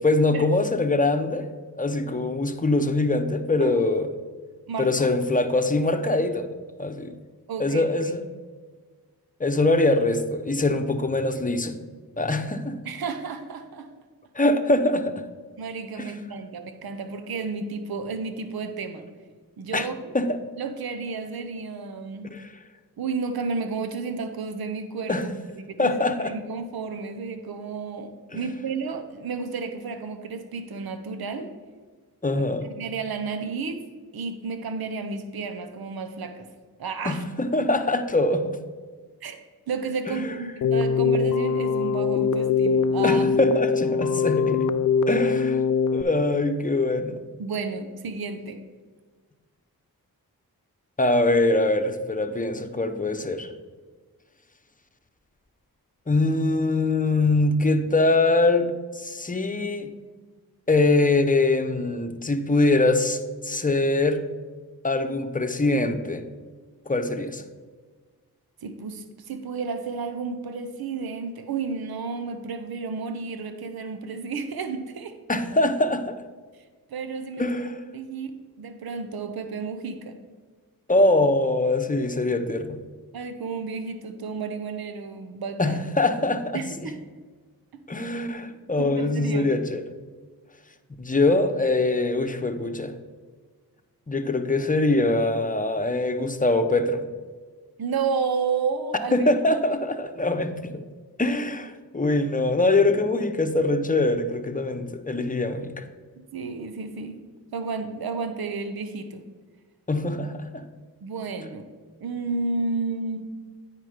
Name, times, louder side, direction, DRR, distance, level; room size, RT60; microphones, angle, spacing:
voice 1, 0.0-1.5 1.8-4.1 4.8-6.5 6.8-7.2 7.6-8.2 9.4-11.8 12.2-12.8 14.3-15.2 16.0-16.1 19.7-19.9 20.1-20.4 22.3-22.5 25.1-25.3 25.8-26.4 28.3-28.4 32.2-32.7 37.0-38.6 40.1-40.3 43.0-44.7 45.1-45.6 45.9-47.2 51.0-53.5 56.1-59.9 60.7-64.2 64.8-66.2 66.9-67.4 75.3-76.2 77.4-77.8 80.9-82.9 85.6-86.6 87.9-89.8 91.0-92.9 94.1-97.0 99.1-100.8 101.2-105.8 109.9-110.6, left 2 dB, 20° left, 7 dB, 0.9 m, -23 dB
voice 2, 4.7-5.1 7.5-7.8 12.8-13.9 15.6-19.1 19.6-20.1 20.6-22.3 23.0-25.3 25.6-31.5 32.3-32.4 32.8-33.8 34.1-36.5 36.8-37.2 39.2-39.4 39.7-43.2 47.4-48.6 68.6-75.1 76.9-77.4 77.9-78.3 78.6-80.2 83.1-85.8 86.5-87.0 88.8-89.5 97.8-99.3 106.3-107.2 107.5-109.2 111.0-111.7 112.0-113.3, right 4 dB, 70° right, 8 dB, 0.9 m, -31 dB
Keyboard (musical), 40.6-46.0, left 5 dB, 55° left, 0.5 m, -22 dB
9.2 x 4.9 x 5.0 m, 1.5 s
cardioid pair, 45°, 38 cm